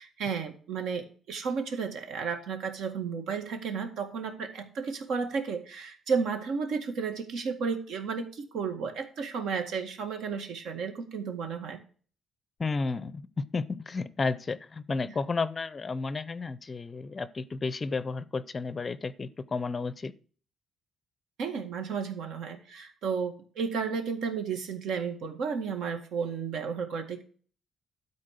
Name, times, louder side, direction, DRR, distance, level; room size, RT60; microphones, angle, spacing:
voice 1, 0.0-11.8 21.4-27.2, right 5 dB, 75° right, 5 dB, 1.9 m, -33 dB
voice 2, 12.6-20.1, left 4 dB, 25° left, 16 dB, 0.5 m, -32 dB
12.5 x 4.3 x 6.7 m, 0.41 s
cardioid pair, 150°, 0 cm